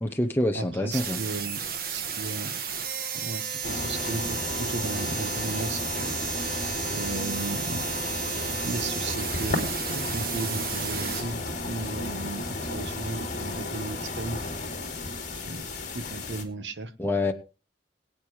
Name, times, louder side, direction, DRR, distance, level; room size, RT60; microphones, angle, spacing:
voice 1, 0.0-1.2 17.0-17.3, left 1 dB, 10° left, 3 dB, 0.8 m, -26 dB
voice 2, 0.5-2.6 3.1-7.8 8.6-14.4 15.3-15.7 15.9-16.9, right 3 dB, 85° right, 11 dB, 1.2 m, -36 dB
sound 1, 0.9-11.2, right 7 dB, 55° right, 1.6 m, -33 dB
sound 2, 3.6-16.4, left 2 dB, 45° left, 2.5 m, -33 dB
22.5 x 8.7 x 3.2 m, 0.33 s
head